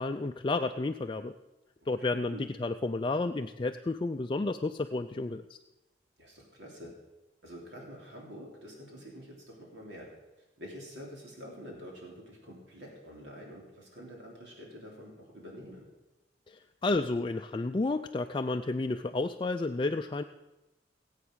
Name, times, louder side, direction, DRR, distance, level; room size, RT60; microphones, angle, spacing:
voice 1, 0.0-1.3 1.9-5.6 16.5-20.2, left 2 dB, 25° left, 6 dB, 0.4 m, -31 dB
voice 2, 2.0-2.5 6.2-6.9 7.4-10.1 10.4-15.9, equal, 75° right, -2 dB, 3.4 m, -47 dB
18.0 x 8.3 x 6.3 m, 1.0 s
head